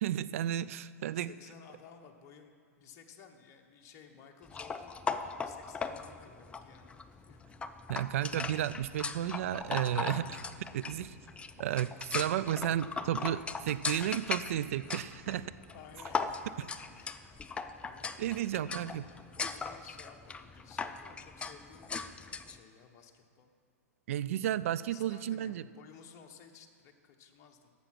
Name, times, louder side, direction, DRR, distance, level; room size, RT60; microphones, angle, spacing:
voice 1, 0.0-1.3 7.9-10.4 10.7-11.2 11.6-15.5 18.2-19.0 24.1-25.6, right 11 dB, 60° right, 15 dB, 0.4 m, -33 dB
voice 2, 1.1-7.4 15.7-16.5 16.9-19.0 19.3-22.2 22.5-23.5 24.9-27.7, left 7 dB, 35° left, 4 dB, 1.1 m, -56 dB
sound 1, 4.5-22.6, left 5 dB, 15° left, 0.4 m, -39 dB
11.5 x 7.3 x 6.0 m, 2.1 s
hypercardioid pair, 105°, 8 cm